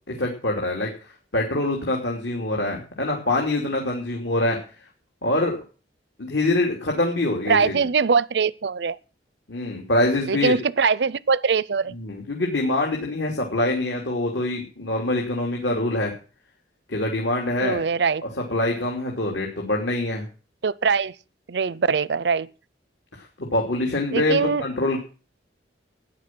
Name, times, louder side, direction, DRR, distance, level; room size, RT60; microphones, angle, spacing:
voice 1, 0.1-0.9 1.3-4.6 5.2-5.5 6.2-7.8 9.5-10.5 11.9-16.1 16.9-17.8 18.2-20.2 23.4-25.0, left 2 dB, 80° left, 3.3 m, -24 dB
voice 2, 7.5-9.0 10.3-12.0 17.6-18.2 20.6-21.1 21.5-22.5 24.1-24.6, right 5 dB, 70° right, 0.6 m, -22 dB
13.5 x 10.0 x 6.2 m
head